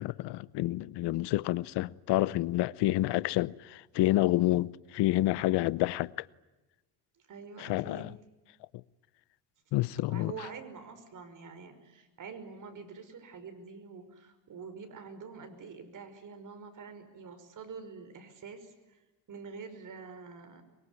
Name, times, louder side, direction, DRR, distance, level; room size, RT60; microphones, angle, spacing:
voice 1, 0.0-6.3 7.6-8.1 9.7-10.3, left 16 dB, 80° left, 0.8 m, -29 dB
voice 2, 7.3-8.1 10.1-19.0 19.3-20.6, right 5 dB, 50° right, 5.6 m, -46 dB
24.0 x 23.5 x 9.6 m
cardioid pair, 110°, 40 cm